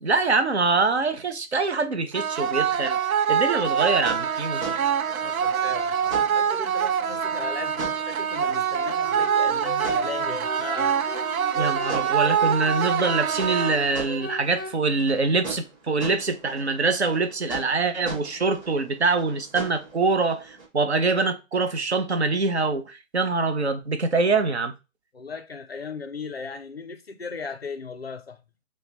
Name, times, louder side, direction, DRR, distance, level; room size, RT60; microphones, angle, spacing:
voice 1, 0.0-3.0 3.3-4.6 11.5-24.7, right 3 dB, 50° right, 0.7 m, -24 dB
sound 1, 2.1-14.1, right 8 dB, 90° right, 0.6 m, -25 dB
sound 2, 3.5-20.7, right 3 dB, 25° right, 1.8 m, -41 dB
voice 2, 5.2-10.9 25.1-28.4, left 5 dB, 50° left, 0.5 m, -37 dB
Wind instrument woodwind instrument, 9.0-14.7, equal, 5° right, 1.5 m, -36 dB
5.4 x 2.2 x 3.4 m
hypercardioid pair, 175°, 41 cm